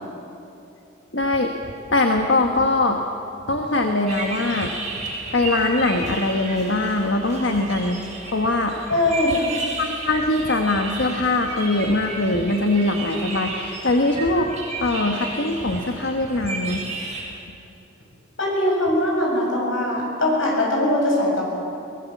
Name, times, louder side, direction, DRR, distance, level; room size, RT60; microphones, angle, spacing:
voice 1, 1.1-1.5 1.9-3.0 3.5-4.7 5.3-8.0 8.3-8.9 9.8-16.8, left 2 dB, 70° left, 3 dB, 1.4 m, -22 dB
sound 1, 4.1-17.2, right 3 dB, 35° right, 7.8 m, -33 dB
voice 2, 8.9-9.5 18.4-21.4, left 1 dB, 90° left, -2 dB, 7.7 m, -21 dB
23.0 x 20.0 x 7.3 m, 2.8 s
head